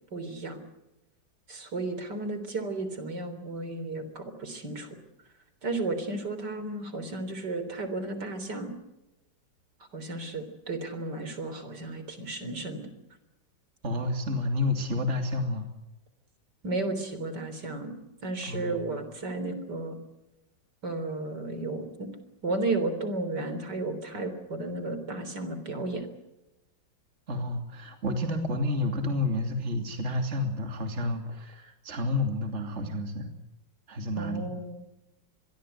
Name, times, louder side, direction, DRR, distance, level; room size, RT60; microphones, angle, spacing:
voice 1, 0.1-0.6 1.5-5.0 5.6-8.7 9.9-12.9 16.6-17.9 18.2-20.0 20.8-22.1 22.4-26.1 34.2-34.8, right 2 dB, 70° right, 9 dB, 4.2 m, -33 dB
voice 2, 13.8-15.7 18.4-18.9 27.3-33.3 33.9-34.5, left 2 dB, 40° right, 4 dB, 3.0 m, -30 dB
26.5 x 22.0 x 8.1 m, 0.99 s
omnidirectional pair, 1.9 m